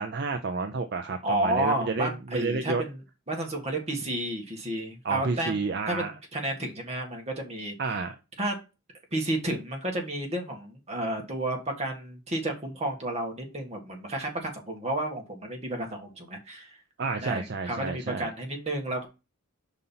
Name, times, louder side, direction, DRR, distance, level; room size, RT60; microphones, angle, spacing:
voice 1, 0.0-2.8 5.0-6.1 7.8-8.2 17.0-18.3, right 4 dB, 50° right, 6 dB, 0.5 m, -30 dB
voice 2, 1.2-3.0 3.3-5.6 5.9-7.8 8.4-8.5 9.1-16.8 17.2-19.1, right 1 dB, 30° right, 2 dB, 1.5 m, -31 dB
5.3 x 4.1 x 5.6 m, 0.29 s
head